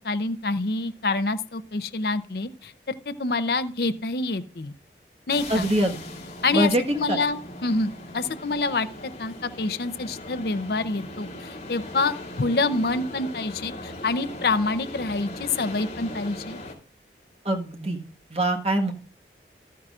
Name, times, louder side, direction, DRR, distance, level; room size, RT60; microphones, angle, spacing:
voice 1, 0.0-2.7 3.1-4.7 5.3-5.7 6.4-6.7 7.0-8.9 9.2-16.6, left 3 dB, 60° left, 11 dB, 0.7 m, -27 dB
sound 1, 5.3-16.7, left 1 dB, 40° left, 3.6 m, -39 dB
voice 2, 5.5-6.0 6.5-7.2 17.4-18.0 18.3-18.9, right 1 dB, 35° right, 2 dB, 1.4 m, -23 dB
13.5 x 9.3 x 2.5 m, 0.41 s
head